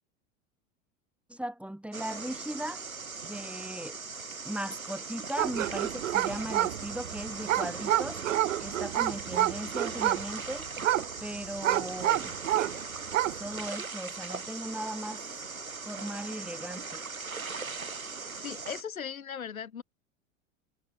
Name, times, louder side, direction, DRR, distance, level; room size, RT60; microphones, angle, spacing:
voice 1, 1.3-2.8 3.2-4.0 4.4-8.2 8.6-10.7 11.2-12.3 13.3-15.2 15.9-17.0, right 1 dB, 5° right, 6.0 m, -38 dB
sound 1, 1.9-18.8, right 4 dB, 85° right, 6.8 m, -39 dB
sound 2, 5.4-12.8 13.0-13.5, right 13 dB, 65° right, 2.2 m, -29 dB
voice 2, 18.4-19.8, left 7 dB, 80° left, 1.7 m, -38 dB
figure-of-eight pair, 85°, 41 cm